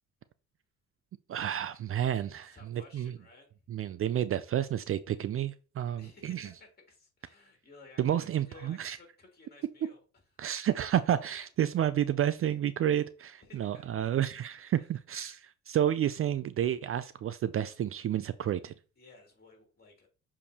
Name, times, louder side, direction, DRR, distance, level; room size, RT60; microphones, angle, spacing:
voice 1, 1.3-3.1 3.7-6.5 8.0-9.0 10.4-18.7, right 10 dB, 45° right, 0.4 m, -30 dB
voice 2, 2.5-3.5 6.0-10.0 10.4-10.8 13.4-14.2 14.8-14.9 19.0-20.1, left 3 dB, 30° left, 3.2 m, -56 dB
7.0 x 4.7 x 2.9 m
cardioid pair, 90°, 30 cm